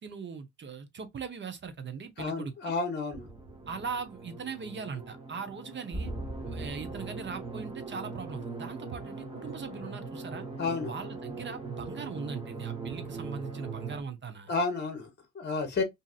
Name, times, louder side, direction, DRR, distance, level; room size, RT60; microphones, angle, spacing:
voice 1, 0.0-2.8 3.7-6.1 6.4-10.5 10.8-14.5, right 5 dB, 40° right, 0.8 m, -40 dB
voice 2, 2.2-3.3 10.6-10.9 14.5-15.8, left 4 dB, 35° left, 1.0 m, -31 dB
sound 1, 3.1-14.0, right 3 dB, 20° right, 1.1 m, -40 dB
2.7 x 2.5 x 2.3 m
cardioid pair, 90°, 30 cm